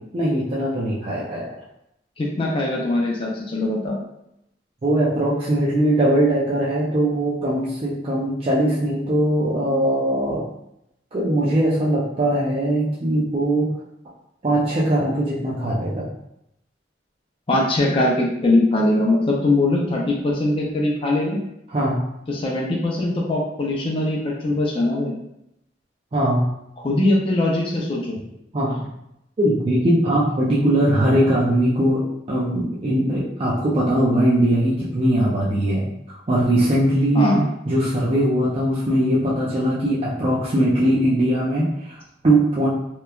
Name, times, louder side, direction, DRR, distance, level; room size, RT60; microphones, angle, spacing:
voice 1, 0.1-1.6 4.8-10.4 11.1-13.7 14.4-16.1 21.7-22.0 26.1-26.4 28.5-28.9 29.4-37.3 37.7-42.7, right 1 dB, 35° right, -7 dB, 0.4 m, -20 dB
voice 2, 2.2-4.0 17.5-21.4 22.3-25.1 26.8-28.2 37.1-37.4, left 2 dB, 30° left, -2 dB, 0.4 m, -21 dB
2.9 x 2.2 x 2.3 m, 0.81 s
head